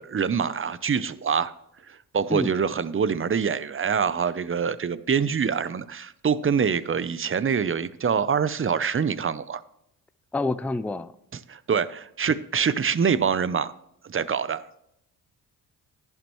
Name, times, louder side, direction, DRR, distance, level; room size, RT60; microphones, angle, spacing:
voice 1, 0.0-1.5 1.9-9.6 11.5-13.7 14.0-14.6, right 6 dB, 35° right, 16 dB, 0.6 m, -25 dB
voice 2, 10.3-11.1, left 2 dB, 5° left, 14 dB, 0.4 m, -27 dB
11.0 x 10.5 x 3.1 m, 0.80 s
supercardioid pair, 60°, 39 cm